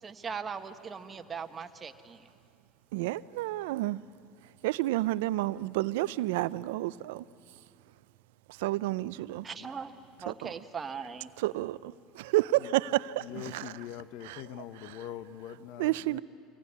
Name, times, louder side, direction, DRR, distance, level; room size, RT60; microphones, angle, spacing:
voice 1, 0.0-2.3 9.4-11.3, right 6 dB, 25° right, 1.3 m, -40 dB
voice 2, 2.9-4.0 4.6-7.2 8.5-9.5 10.3-10.5 11.4-13.7 14.2-14.4 14.8-15.0 15.8-16.2, right 17 dB, 85° right, 0.5 m, -30 dB
voice 3, 13.2-16.2, left 11 dB, 65° left, 0.8 m, -43 dB
24.5 x 17.5 x 9.7 m
supercardioid pair, 110°, 0 cm